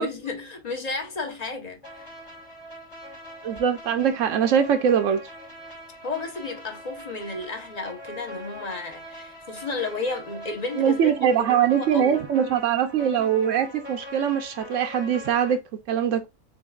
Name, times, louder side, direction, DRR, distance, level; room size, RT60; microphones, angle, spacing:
voice 1, 0.0-2.1 6.0-12.2, left 3 dB, 35° left, 1.0 m, -33 dB
sound 1, 1.8-15.5, left 1 dB, 65° left, 3.4 m, -42 dB
voice 2, 3.4-5.2 10.8-15.6 15.9-16.3, right 8 dB, 80° right, 1.0 m, -22 dB
6.9 x 2.6 x 2.3 m
omnidirectional pair, 1.3 m